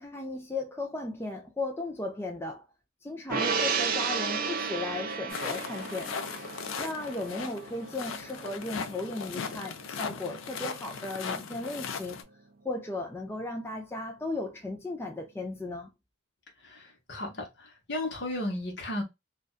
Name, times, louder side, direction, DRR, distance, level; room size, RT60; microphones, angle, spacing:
voice 1, 0.0-2.6 3.0-6.1 6.8-12.3 12.6-15.9, left 2 dB, 10° left, 0.4 m, -36 dB
Gong, 3.3-9.9 10.3-10.4, right 5 dB, 45° right, 0.5 m, -33 dB
sound 1, 5.3-12.2, left 6 dB, 80° left, 0.4 m, -38 dB
voice 2, 16.6-19.0, left 1 dB, 60° left, 1.0 m, -34 dB
2.6 x 2.2 x 2.3 m
head